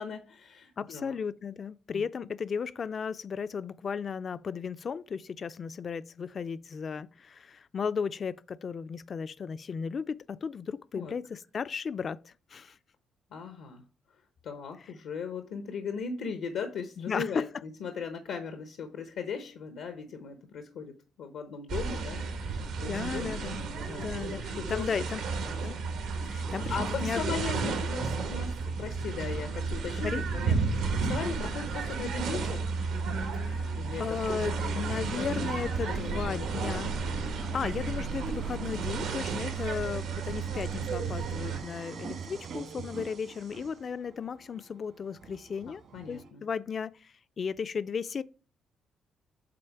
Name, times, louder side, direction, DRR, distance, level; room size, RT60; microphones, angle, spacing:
voice 1, 0.0-1.1 1.9-2.0 10.9-11.1 13.3-13.8 14.1-23.3 23.8-24.1 24.6-24.9 25.4-25.6 26.7-32.6 33.8-34.0 34.6-35.4 35.9-36.5 45.7-46.4, left 5 dB, 85° left, 0.8 m, -38 dB
voice 2, 0.8-12.8 17.0-17.4 22.8-23.6 24.0-25.2 25.6-25.8 26.2-27.3 30.0-30.2 33.3-36.9 37.4-48.2, left 6 dB, 45° left, 0.3 m, -35 dB
sound 1, 21.7-41.6, right 4 dB, 90° right, 1.6 m, -32 dB
sound 2, 35.0-46.3, right 5 dB, 65° right, 1.5 m, -42 dB
7.7 x 3.6 x 4.5 m
cardioid pair, 90°, 0 cm